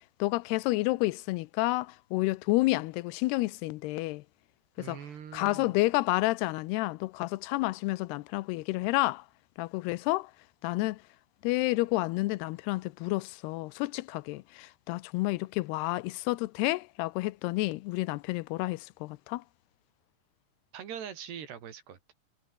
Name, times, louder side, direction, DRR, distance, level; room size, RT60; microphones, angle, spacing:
voice 1, 0.2-4.2 4.8-5.0 5.3-9.2 9.6-10.3 10.6-11.0 11.4-19.4, left 21 dB, 85° left, 2.7 m, -30 dB
voice 2, 4.8-5.7 20.7-22.0, right 8 dB, 90° right, 5.2 m, -42 dB
omnidirectional pair, 4.6 m